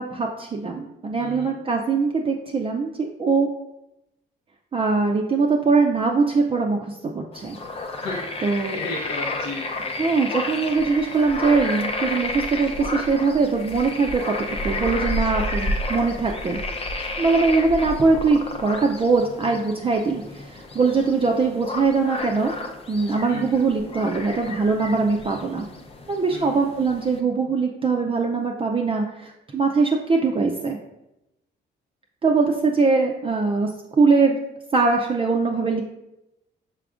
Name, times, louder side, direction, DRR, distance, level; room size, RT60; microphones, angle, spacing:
voice 1, 0.0-3.5 4.7-7.6 8.4-8.8 9.9-14.3 14.6-16.6 17.2-22.5 22.9-25.7 26.1-30.8 32.2-33.7 34.0-34.4 34.7-35.8, right 4 dB, 25° right, 1 dB, 0.4 m, -22 dB
voice 2, 1.1-1.5 8.0-8.2 8.7-10.0 23.3-23.5 26.3-26.6, left 2 dB, 70° left, -2 dB, 0.7 m, -34 dB
sound 1, 7.3-27.2, left 2 dB, 30° left, 0.6 m, -31 dB
5.8 x 3.5 x 2.4 m, 0.90 s
cardioid pair, 90°, 20 cm